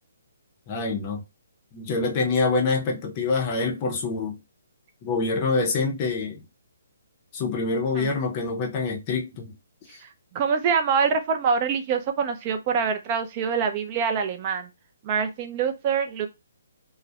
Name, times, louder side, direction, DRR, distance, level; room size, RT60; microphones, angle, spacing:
voice 1, 0.7-1.2 1.7-4.4 5.0-6.4 7.3-9.5 9.9-10.0, left 4 dB, 25° left, 0.6 m, -26 dB
voice 2, 10.3-14.7 15.0-16.3, right 6 dB, 30° right, 0.4 m, -25 dB
2.3 x 2.0 x 2.7 m
hypercardioid pair, 160°, 0 cm